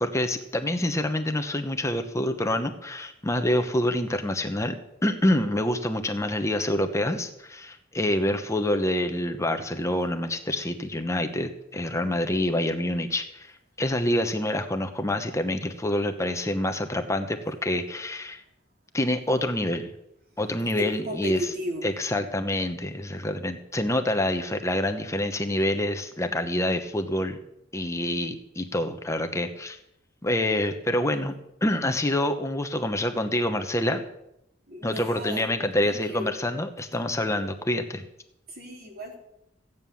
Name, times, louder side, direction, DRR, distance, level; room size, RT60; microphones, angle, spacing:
voice 1, 0.0-4.8 5.0-18.4 18.9-19.9 20.4-21.5 21.8-27.4 27.7-29.8 30.2-31.4 31.6-34.0 34.8-38.0, left 1 dB, 15° left, 7 dB, 1.0 m, -27 dB
voice 2, 20.8-21.9 34.7-36.3 38.5-39.2, left 1 dB, 50° right, 0 dB, 3.9 m, -35 dB
16.0 x 9.3 x 7.1 m, 0.83 s
head